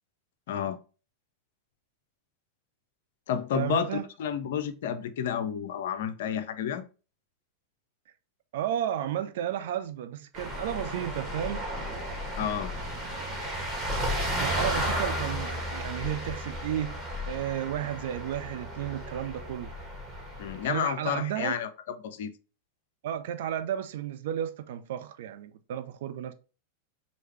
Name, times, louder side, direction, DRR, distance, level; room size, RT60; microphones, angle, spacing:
voice 1, 0.5-0.8 3.3-6.8 12.4-12.7 20.4-21.7 22.0-22.3, left 8 dB, 55° left, 0.5 m, -30 dB
voice 2, 3.5-4.1 8.5-11.6 12.4-12.5 14.4-17.0 17.3-19.8 20.6-21.6 23.0-26.3, right 10 dB, 55° right, 0.5 m, -33 dB
sound 1, 10.3-20.7, equal, 15° right, 1.8 m, -33 dB
4.7 x 2.8 x 3.2 m
figure-of-eight pair, 90°, 0 cm